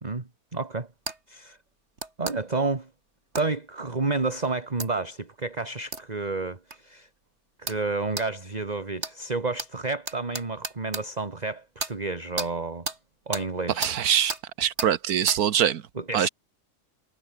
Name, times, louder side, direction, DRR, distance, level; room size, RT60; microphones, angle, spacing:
voice 1, 0.0-0.9 1.3-1.6 2.2-2.9 3.3-7.1 7.6-12.9 13.3-13.9 16.0-16.3, right 3 dB, 25° right, 2.0 m, -30 dB
sound 1, 1.1-1.2 2.0-2.4 3.3-3.5 4.8-4.9 5.9-6.0 6.7-6.8 7.7-7.8 8.2-8.3 9.0-9.1 9.6-9.7 10.1-11.0 11.8-11.9 12.4-12.5 12.8-13.0 13.3-13.5 13.8-13.9 14.3-14.4 14.8-14.9 15.3-15.4, right 3 dB, 45° right, 3.7 m, -32 dB
voice 2, 13.8-14.3 14.6-15.8 16.1-16.3, right 9 dB, 75° right, 1.4 m, -23 dB
omnidirectional pair, 1.6 m